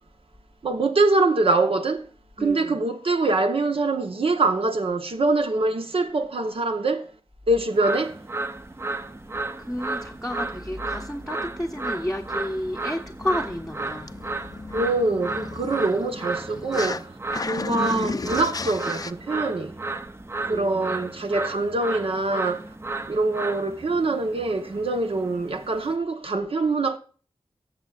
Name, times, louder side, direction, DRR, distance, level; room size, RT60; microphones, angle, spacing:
voice 1, 0.6-2.1 2.4-7.1 7.5-8.2 14.7-17.1 17.4-19.7 20.4-22.7 23.1-27.0, right 2 dB, 65° right, 1.1 m, -24 dB
voice 2, 2.4-2.9 9.6-14.2 16.7-17.1 20.4-21.1, left 1 dB, 5° left, 0.9 m, -31 dB
sound 1, 7.7-25.9, right 3 dB, 25° right, 0.6 m, -34 dB
sound 2, 13.2-17.0 17.3-19.1, left 3 dB, 40° left, 0.5 m, -34 dB
18.0 x 7.2 x 2.5 m
wide cardioid pair, 85°, 10 cm